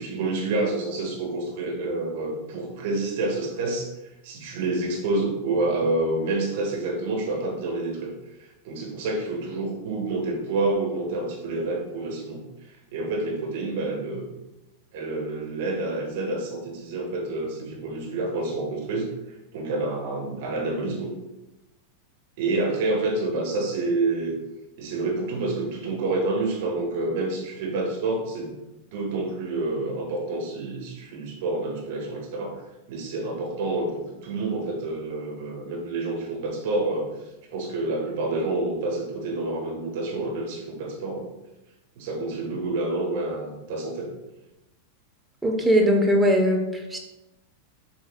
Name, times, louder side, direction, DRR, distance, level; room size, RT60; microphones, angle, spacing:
voice 1, 0.0-8.1 8.4-14.3 14.9-19.1 19.5-21.1 22.4-24.4 24.8-28.5 28.9-32.6 32.9-37.1 37.5-41.3 42.0-44.1, right 2 dB, 50° right, 0 dB, 1.5 m, -28 dB
voice 2, 45.4-47.0, equal, 5° right, 1 dB, 1.1 m, -20 dB
7.4 x 5.3 x 2.4 m, 0.94 s
figure-of-eight pair, 90°, 0 cm